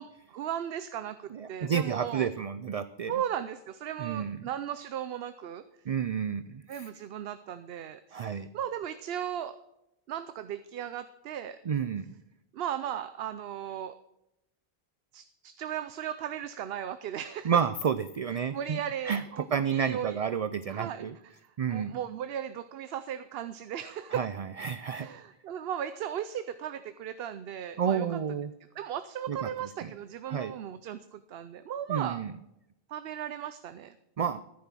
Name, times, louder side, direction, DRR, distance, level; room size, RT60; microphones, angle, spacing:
voice 1, 0.0-2.3 3.1-5.6 6.7-9.6 10.1-11.6 12.5-13.9 15.1-17.6 18.5-20.2 20.7-21.1 21.7-24.2 24.9-28.2 28.8-32.2 32.9-33.9, right 10 dB, 75° right, 12 dB, 0.8 m, -36 dB
voice 2, 1.3-3.2 4.0-4.5 5.9-6.9 8.1-8.5 11.7-12.2 17.4-21.2 21.6-22.0 24.1-25.1 27.8-28.5 29.3-29.5 29.8-29.9 30.3-30.5 31.9-32.3 34.2-34.4, right 7 dB, 55° right, 13 dB, 0.4 m, -31 dB
10.5 x 9.7 x 6.1 m, 0.86 s
omnidirectional pair, 1.0 m